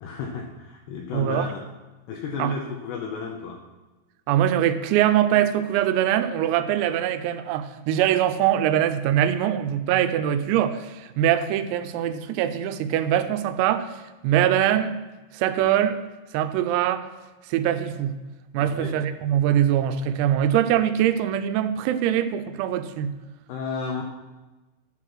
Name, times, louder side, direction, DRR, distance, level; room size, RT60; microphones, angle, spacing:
voice 1, 0.0-1.6 2.1-3.6 18.6-18.9 23.5-24.0, left 5 dB, 85° left, 1 dB, 2.3 m, -33 dB
voice 2, 1.1-1.5 2.4-2.5 4.3-15.0 15.3-16.0 16.3-17.1 17.5-18.1 18.5-23.2, right 11 dB, 90° right, 10 dB, 3.3 m, -23 dB
11.5 x 5.8 x 6.2 m, 1.2 s
omnidirectional pair, 6.0 m